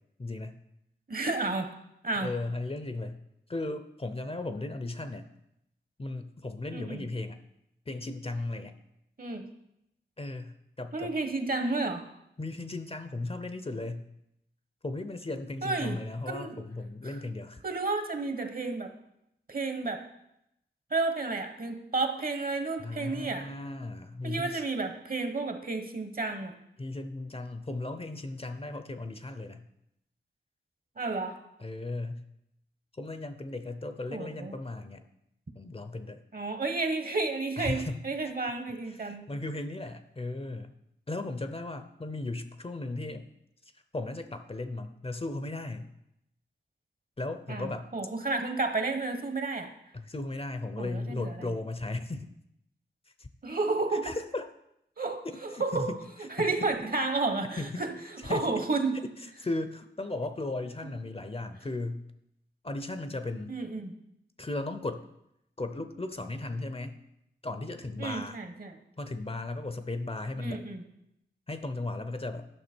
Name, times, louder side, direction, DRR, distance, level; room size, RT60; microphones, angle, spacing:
voice 1, 0.2-0.6 2.2-3.2 3.5-5.3 6.0-7.4 7.9-8.7 10.2-11.1 12.4-14.0 14.8-17.6 22.8-24.6 26.8-29.6 31.6-32.2 32.9-35.1 35.6-36.2 37.6-38.0 38.9-40.7 41.1-43.3 43.9-45.9 47.2-47.9 49.9-52.3 53.2-53.3 53.9-54.5 55.5-56.0 56.4-56.5 57.6-57.8 58.2-58.6 59.4-62.0 62.6-63.5 64.4-65.0 65.6-67.0 67.4-68.4 69.0-70.6 71.5-72.5, left 2 dB, 30° left, 9 dB, 0.7 m, -36 dB
voice 2, 1.1-1.7 2.0-2.3 6.7-7.0 9.2-9.5 10.9-12.0 15.6-16.0 16.3-16.6 17.0-17.1 17.6-18.9 19.5-20.0 20.9-23.4 24.2-26.5 31.0-31.4 34.1-34.5 36.3-39.3 47.5-49.7 50.8-51.5 53.4-54.1 55.0-55.9 56.4-57.9 58.2-58.9 63.5-63.9 68.0-68.8 70.4-70.8, right 3 dB, 50° right, 6 dB, 1.1 m, -31 dB
9.9 x 5.8 x 4.4 m, 0.82 s
wide cardioid pair, 60°, 19 cm